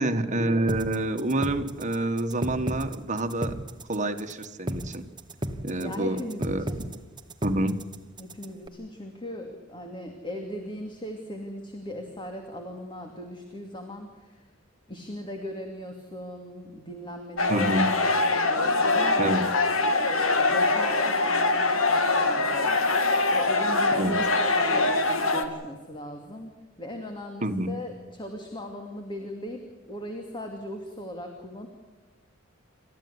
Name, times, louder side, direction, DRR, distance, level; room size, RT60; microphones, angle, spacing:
voice 1, 0.0-3.6 3.9-5.0 5.6-6.6 7.4-7.8 17.5-17.9 19.2-19.4 23.9-24.2 27.4-27.8, right 1 dB, 40° right, 7 dB, 1.6 m, -27 dB
sound 1, 0.7-8.7, right 1 dB, 20° right, 1.4 m, -34 dB
voice 2, 5.8-6.8 8.2-14.5 14.9-19.2 20.1-26.5 26.8-31.7, left 1 dB, 25° left, 3 dB, 2.6 m, -38 dB
sound 2, 17.4-25.4, left 3 dB, 80° left, 2.3 m, -23 dB
29.0 x 14.0 x 9.7 m, 1.2 s
head